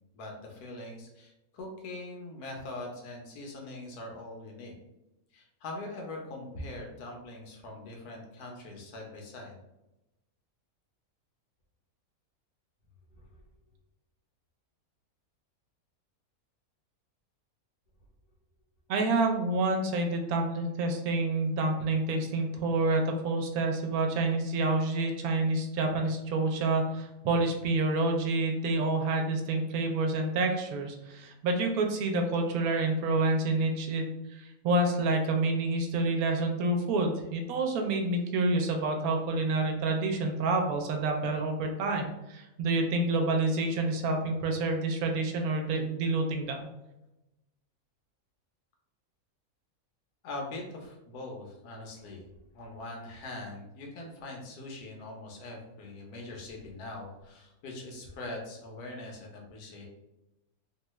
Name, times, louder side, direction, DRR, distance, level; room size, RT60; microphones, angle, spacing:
voice 1, 0.1-4.7 5.3-9.5 13.1-13.3 50.2-52.3 52.5-59.9, left 2 dB, 85° left, 0 dB, 1.3 m, -42 dB
voice 2, 18.9-46.7, right 2 dB, 75° right, 3 dB, 1.0 m, -28 dB
3.1 x 2.3 x 3.0 m, 0.95 s
omnidirectional pair, 1.6 m